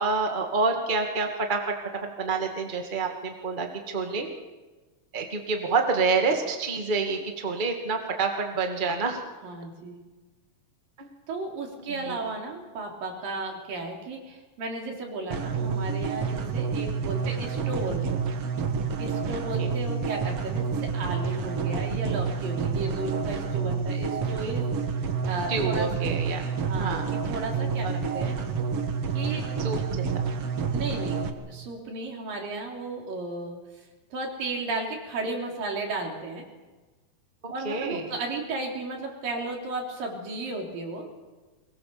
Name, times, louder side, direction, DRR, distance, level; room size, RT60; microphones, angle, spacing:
voice 1, 0.0-1.7 2.0-4.3 5.1-9.2 11.0-11.1 11.9-12.2 19.6-19.7 22.8-22.9 25.5-26.5 26.8-27.0 27.8-27.9 29.6-30.2 37.4-38.1, right 4 dB, 20° right, 3 dB, 1.7 m, -28 dB
voice 2, 9.4-10.0 11.3-18.2 19.0-24.6 25.0-25.9 26.6-27.0 27.3-28.4 29.1-29.4 30.7-31.2 31.5-33.6 34.1-36.4 37.5-41.1, right 2 dB, 80° right, 1 dB, 5.2 m, -34 dB
sound 1, 15.3-31.3, right 5 dB, 50° right, 2.1 m, -29 dB
23.0 x 21.5 x 7.0 m, 1.3 s
omnidirectional pair, 3.9 m